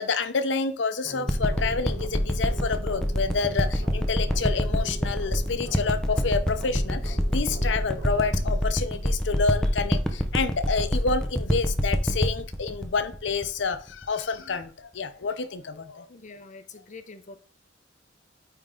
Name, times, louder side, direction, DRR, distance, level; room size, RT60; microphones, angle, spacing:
voice 1, 0.0-16.1, left 4 dB, 75° left, 11 dB, 0.7 m, -28 dB
sound 1, 1.0-10.0, right 3 dB, 75° right, 2.2 m, -43 dB
sound 2, 1.3-14.0 14.6-14.7, equal, 5° left, 0.7 m, -25 dB
voice 2, 16.1-17.4, left 3 dB, 45° left, 8 dB, 0.7 m, -45 dB
9.1 x 3.5 x 3.8 m, 0.40 s
head